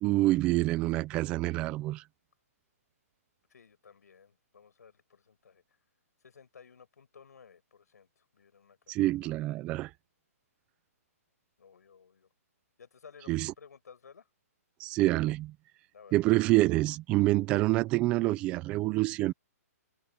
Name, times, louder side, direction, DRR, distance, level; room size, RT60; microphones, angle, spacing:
voice 1, 0.0-2.0 8.9-9.9 13.3-13.5 14.8-15.5 16.1-19.3, right 18 dB, 10° right, 0.4 m, -27 dB
voice 2, 3.5-5.6 6.2-9.3 11.6-12.3 12.8-14.3 15.9-16.2, left 6 dB, 90° left, 6.6 m, -56 dB
hypercardioid pair, 175°, 9 cm